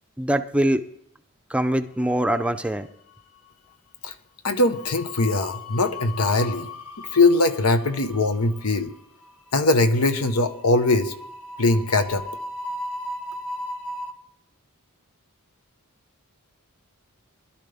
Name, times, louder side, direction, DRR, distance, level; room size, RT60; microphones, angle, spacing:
voice 1, 0.2-0.8 1.5-2.9, right 1 dB, 5° right, 9 dB, 0.5 m, -23 dB
sound 1, 2.1-2.8 3.1-3.4 4.6-14.1, left 2 dB, 75° left, 1.5 m, -37 dB
voice 2, 4.4-6.7 7.1-8.9 9.5-11.1 11.6-12.2, left 2 dB, 90° left, 9 dB, 1.1 m, -21 dB
21.5 x 11.5 x 3.5 m, 0.75 s
head